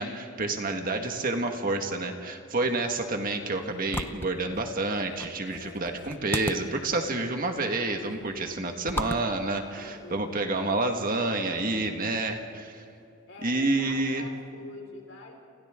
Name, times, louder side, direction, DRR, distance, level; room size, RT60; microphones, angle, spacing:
voice 1, 0.0-12.8 13.4-14.3, right 2 dB, 40° right, 4 dB, 1.7 m, -29 dB
sound 1, 2.8-10.4, left 1 dB, 10° left, 0.6 m, -39 dB
voice 2, 5.6-6.4 6.8-6.9 9.8-10.4 13.3-15.4, left 2 dB, 60° left, 1 dB, 4.7 m, -46 dB
29.5 x 28.0 x 3.8 m, 2.6 s
head